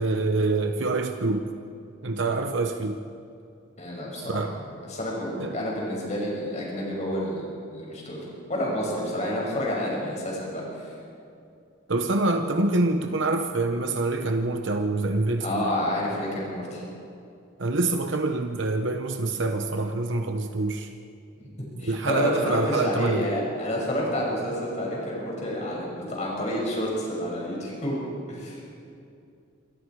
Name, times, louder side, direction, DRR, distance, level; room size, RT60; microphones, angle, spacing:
voice 1, 0.0-1.5 2.0-3.0 4.3-4.5 5.4-5.5 11.9-15.7 17.6-20.9 21.8-23.3, right 2 dB, 65° right, 5 dB, 1.0 m, -26 dB
voice 2, 3.8-7.4 7.7-8.2 8.5-10.9 15.4-16.8 21.4-28.0 28.3-28.6, equal, 35° left, -3 dB, 6.6 m, -29 dB
27.5 x 25.0 x 4.8 m, 2.5 s
head